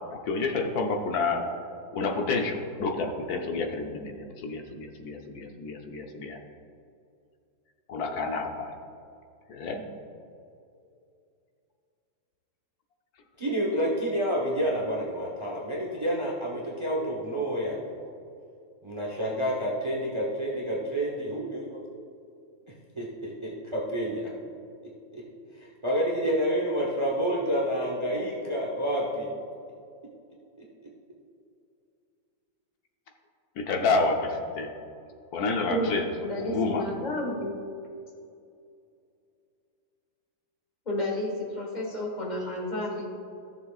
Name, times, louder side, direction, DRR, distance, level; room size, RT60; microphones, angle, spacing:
voice 1, 0.3-1.4 1.9-6.4 7.9-8.7 9.5-9.8 33.6-34.7 35.3-36.1 36.4-36.9, left 3 dB, 60° left, 3 dB, 1.2 m, -29 dB
voice 2, 13.4-18.0 18.8-21.8 22.7-24.3 25.1-25.2 25.5-29.3, equal, 25° right, -4 dB, 0.6 m, -29 dB
voice 3, 36.2-37.7 40.8-43.1, left 1 dB, 25° left, -2 dB, 1.5 m, -31 dB
14.5 x 6.9 x 2.4 m, 2.5 s
omnidirectional pair, 2.1 m